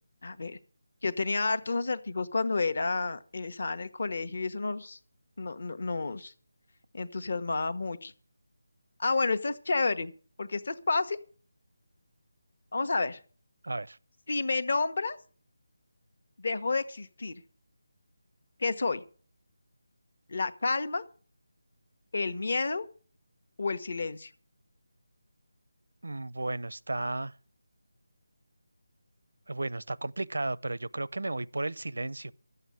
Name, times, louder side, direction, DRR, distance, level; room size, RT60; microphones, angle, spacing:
voice 1, 0.2-0.6 1.0-5.0 5.4-6.3 6.9-8.1 9.0-10.1 10.4-11.2 12.7-13.2 14.3-15.2 16.4-17.3 18.6-19.0 20.3-21.0 22.1-22.8 23.6-24.3, left 3 dB, 45° left, 1.1 m, -30 dB
voice 2, 13.6-14.0 26.0-27.3 29.5-32.3, right 2 dB, 90° right, 0.5 m, -34 dB
12.5 x 8.0 x 7.8 m
figure-of-eight pair, 175°, 0 cm